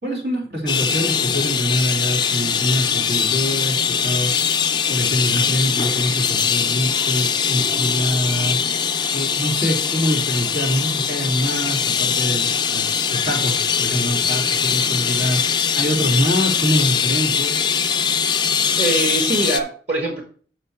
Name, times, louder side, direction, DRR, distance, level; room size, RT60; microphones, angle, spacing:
voice 1, 0.0-4.3 4.9-8.6 9.1-17.6, equal, 80° right, -1 dB, 2.8 m, -24 dB
sound 1, 0.7-19.6, left 7 dB, 25° left, 0.5 m, -21 dB
voice 2, 18.8-20.2, right 2 dB, 45° right, -1 dB, 1.4 m, -22 dB
6.7 x 5.7 x 4.3 m, 0.43 s
head